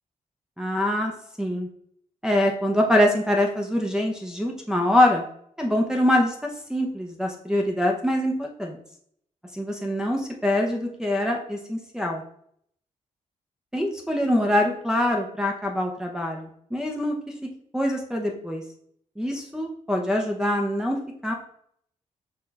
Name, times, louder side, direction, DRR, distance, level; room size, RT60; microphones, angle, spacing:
voice 1, 0.6-1.1 1.4-1.7 2.2-5.2 5.6-8.8 9.5-12.2 13.7-17.2 17.7-18.6 19.2-21.0 21.2-21.3, left 1 dB, 5° right, -1 dB, 0.7 m, -24 dB
6.6 x 2.4 x 3.3 m, 0.66 s
cardioid pair, 80°, 14 cm